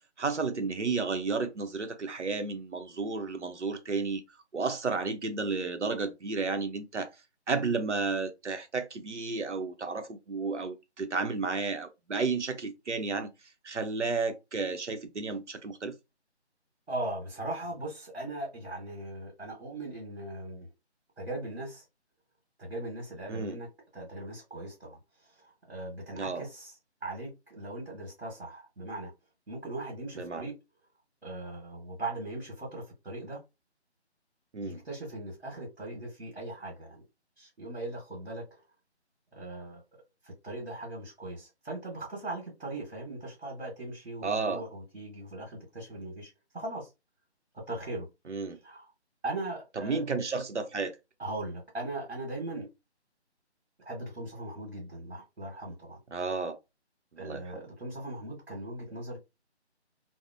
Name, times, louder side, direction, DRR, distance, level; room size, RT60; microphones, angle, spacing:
voice 1, 0.2-4.2 4.5-7.1 7.5-13.3 13.6-16.0 23.3-23.6 26.1-26.5 30.2-30.5 34.5-34.8 44.2-44.6 48.3-48.6 49.8-51.0 56.1-56.6 57.2-57.6, right 4 dB, 85° right, 0.8 m, -32 dB
voice 2, 16.9-20.7 21.2-21.8 22.6-23.7 23.9-25.0 25.4-26.7 27.0-29.1 29.5-30.6 31.2-33.4 34.6-37.0 37.4-38.6 39.3-39.8 40.2-46.9 47.5-48.1 48.6-48.9 49.2-50.0 51.2-52.7 53.8-56.0 57.2-59.2, right 2 dB, 65° right, 1.6 m, -39 dB
3.4 x 2.0 x 2.6 m
figure-of-eight pair, 155°, 34 cm